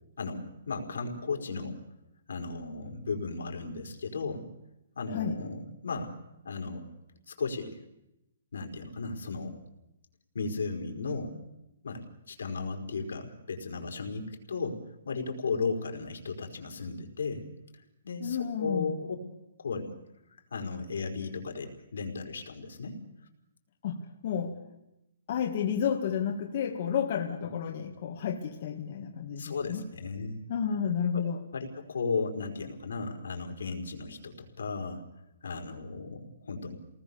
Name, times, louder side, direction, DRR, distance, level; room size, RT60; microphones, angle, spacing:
voice 1, 0.2-1.8 2.3-4.5 4.9-6.2 6.4-6.9 7.3-7.8 8.5-9.5 10.3-11.4 11.8-17.4 18.0-19.1 19.6-19.9 20.5-23.0 29.4-30.4 31.1-31.2 31.5-35.0 35.4-36.7, left 4 dB, 85° left, 3 dB, 4.8 m, -35 dB
voice 2, 5.1-5.4 18.2-18.9 23.8-24.6 25.3-29.8 30.5-31.4, left 7 dB, 45° left, 1 dB, 2.1 m, -31 dB
27.5 x 19.5 x 7.1 m, 0.87 s
hypercardioid pair, 165°, 0 cm